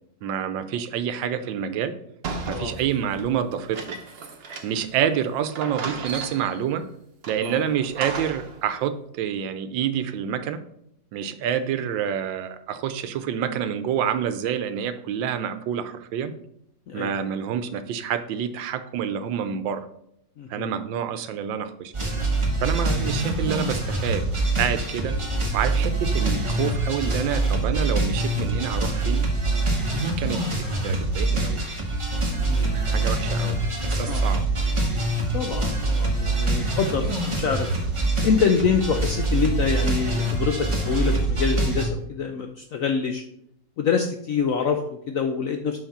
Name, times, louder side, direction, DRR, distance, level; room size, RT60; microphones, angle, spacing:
voice 1, 0.2-1.9 2.5-4.0 4.6-6.8 7.3-10.6 11.1-16.3 16.9-19.9 20.5-21.9 22.6-24.3 24.6-25.2 25.5-29.2 29.9-31.6 32.7-34.4, right 8 dB, 85° right, 11 dB, 1.4 m, -28 dB
sound 1, 2.2-5.0 5.2-5.3 5.6-6.7 7.2-8.6, right 4 dB, 60° right, 0.6 m, -35 dB
voice 2, 2.4-2.7 7.4-7.6 16.9-17.1 20.4-20.7 32.4-33.2 34.0-34.2 35.3-37.7 38.2-43.2 43.8-45.8, left 6 dB, 75° left, 5 dB, 0.7 m, -26 dB
sound 2, 21.9-41.8, right 2 dB, 20° right, 0.9 m, -24 dB
5.8 x 5.7 x 4.2 m, 0.72 s
omnidirectional pair, 2.0 m